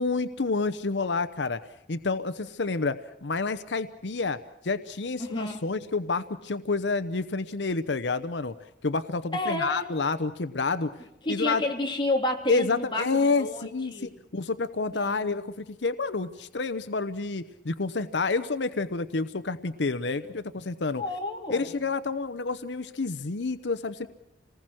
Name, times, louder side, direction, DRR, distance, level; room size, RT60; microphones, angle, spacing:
voice 1, 0.0-1.6 1.9-8.5 8.8-10.9 11.3-11.6 12.5-21.0 21.5-24.1, left 3 dB, 85° left, 12 dB, 0.8 m, -29 dB
voice 2, 5.2-5.6 9.3-9.9 11.2-13.1 13.4-14.1 14.9-15.1 21.0-21.7, left 1 dB, 30° left, 1 dB, 3.1 m, -30 dB
28.0 x 19.5 x 6.3 m, 0.86 s
head